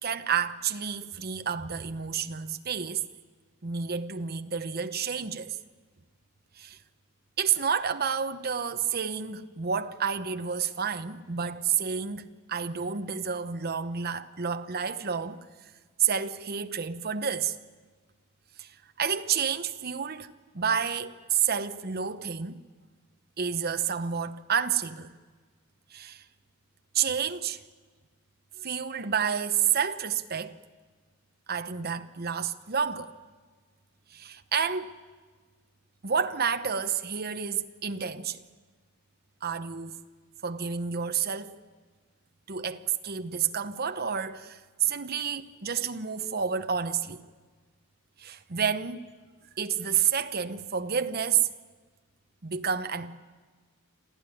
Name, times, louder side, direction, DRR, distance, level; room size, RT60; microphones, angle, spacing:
voice 1, 0.0-3.1 3.6-5.6 6.6-6.8 7.4-15.5 16.0-17.6 18.6-22.6 23.4-25.1 25.9-26.2 26.9-27.6 28.6-30.6 31.5-33.1 34.1-35.1 36.0-38.4 39.4-40.0 40.4-41.6 42.5-47.3 48.2-49.1 49.6-51.5 52.4-53.2, right 7 dB, 45° right, 0.9 m, -30 dB
26.5 x 14.5 x 9.9 m
head